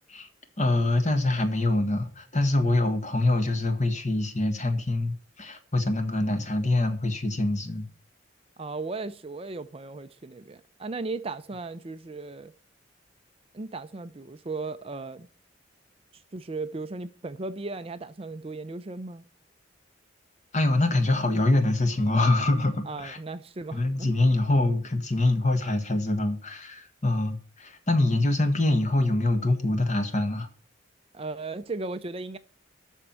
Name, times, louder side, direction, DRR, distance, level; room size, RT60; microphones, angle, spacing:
voice 1, 0.6-7.8 20.5-23.2 23.7-30.5, left 2 dB, 35° left, 1.6 m, -25 dB
voice 2, 8.6-12.5 13.5-15.3 16.1-19.2 22.9-24.1 31.1-32.4, right 3 dB, 30° right, 0.5 m, -36 dB
13.0 x 4.5 x 8.6 m
head